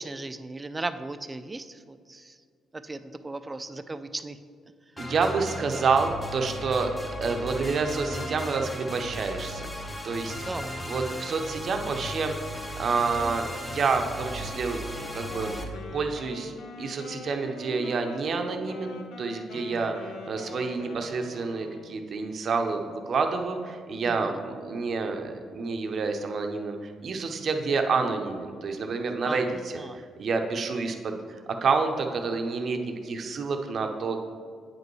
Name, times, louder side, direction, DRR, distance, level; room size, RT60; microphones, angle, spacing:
voice 1, 0.0-2.3 2.8-4.4 10.5-10.7 19.5-19.9 24.1-24.4 29.2-29.5 29.8-30.0, right 2 dB, 20° right, 11 dB, 0.4 m, -37 dB
sound 1, 5.0-15.6, left 1 dB, 15° left, 0.9 m, -36 dB
voice 2, 5.0-6.9 7.2-9.6 10.0-10.3 10.9-12.3 12.8-15.5 15.9-16.5 16.8-29.8 30.2-31.2 31.6-34.2, right 4 dB, 55° right, 5 dB, 0.7 m, -28 dB
Wind instrument woodwind instrument, 14.8-22.0, left 4 dB, 80° left, 0.6 m, -43 dB
8.6 x 5.2 x 3.1 m, 2.1 s
cardioid pair, 90°, 0 cm